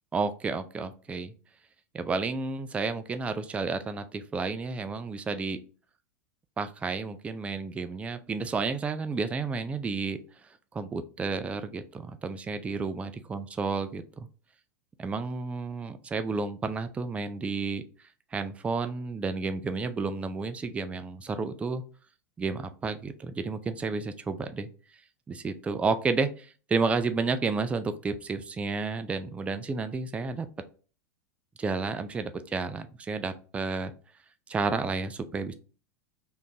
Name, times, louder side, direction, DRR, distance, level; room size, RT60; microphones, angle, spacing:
voice 1, 0.1-1.3 1.9-5.6 6.6-10.2 10.7-14.3 15.0-17.8 18.3-21.8 22.4-24.7 25.3-30.5 31.6-33.9 34.5-35.5, right 4 dB, 15° right, 10 dB, 0.3 m, -31 dB
3.6 x 2.5 x 2.7 m, 0.38 s
hypercardioid pair, 105°, 9 cm